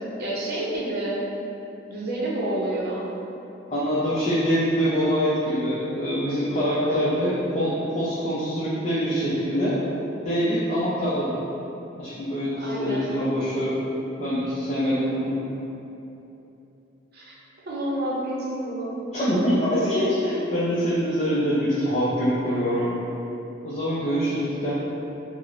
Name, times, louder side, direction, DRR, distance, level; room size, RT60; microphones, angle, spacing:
voice 1, 0.2-1.2 1.9-3.1 12.6-13.1 17.1-17.3 17.7-19.1, right 1 dB, 55° right, -6 dB, 0.6 m, -29 dB
voice 2, 3.7-9.8 10.2-11.3 12.0-13.7 14.2-15.3 19.1-23.0 23.6-24.7, equal, 35° left, -9 dB, 0.4 m, -24 dB
4.6 x 2.0 x 2.4 m, 3.0 s
head